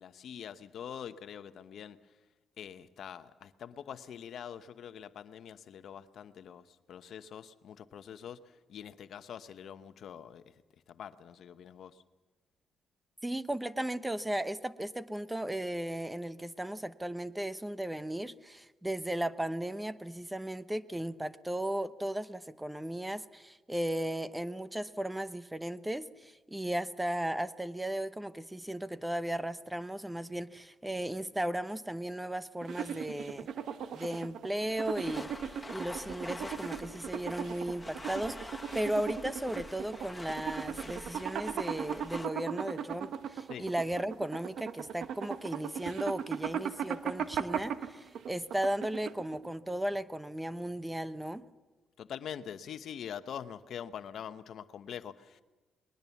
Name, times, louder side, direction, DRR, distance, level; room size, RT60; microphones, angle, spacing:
voice 1, 0.0-2.2 2.6-10.5 10.9-12.0 43.5-43.7 52.0-55.4, left 8 dB, 65° left, 11 dB, 1.0 m, -44 dB
voice 2, 13.2-33.5 33.9-51.4, right 1 dB, 10° right, 13 dB, 0.9 m, -36 dB
sound 1, 32.6-49.5, right 8 dB, 70° right, 1.3 m, -38 dB
sound 2, 34.7-42.3, left 2 dB, 10° left, 1.4 m, -46 dB
21.0 x 20.0 x 7.2 m, 1.2 s
cardioid pair, 90°, 0 cm